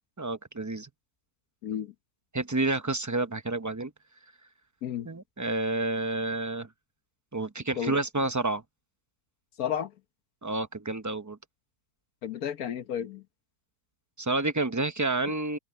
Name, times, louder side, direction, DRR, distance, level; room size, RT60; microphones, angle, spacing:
voice 1, 0.2-0.9 2.3-3.9 5.0-6.7 7.3-8.6 10.4-11.4 14.2-15.6, right 2 dB, 20° right, 0.5 m, -29 dB
voice 2, 1.6-1.9 4.8-5.1 7.8-7.9 9.6-9.9 12.2-13.2 15.3-15.4, left 9 dB, 75° left, 1.4 m, -32 dB
open air
omnidirectional pair, 1.6 m